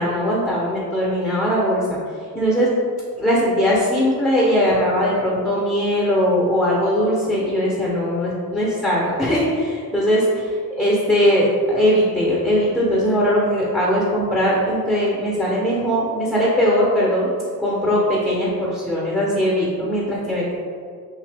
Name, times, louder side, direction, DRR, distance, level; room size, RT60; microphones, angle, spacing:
voice 1, 0.0-1.9 2.3-2.7 3.1-10.4 10.8-17.3 17.6-20.6, equal, ahead, -6 dB, 0.6 m, -20 dB
2.9 x 2.6 x 3.3 m, 2.1 s
cardioid pair, 85°, 39 cm